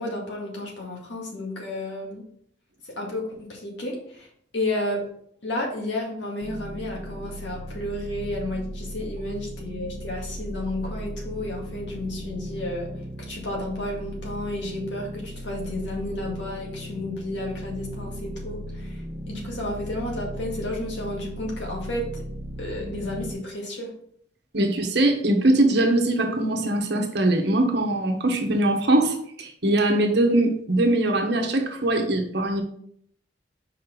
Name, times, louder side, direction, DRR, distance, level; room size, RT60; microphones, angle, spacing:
voice 1, 0.0-2.3 2.9-4.3 4.5-5.0 5.4-12.9 13.3-22.3 22.6-23.9, left 1 dB, 70° left, -1 dB, 2.0 m, -32 dB
sound 1, 6.4-23.3, equal, 40° right, 1.3 m, -37 dB
voice 2, 24.5-32.6, right 1 dB, 60° right, 3 dB, 1.1 m, -22 dB
5.5 x 4.9 x 3.8 m, 0.65 s
head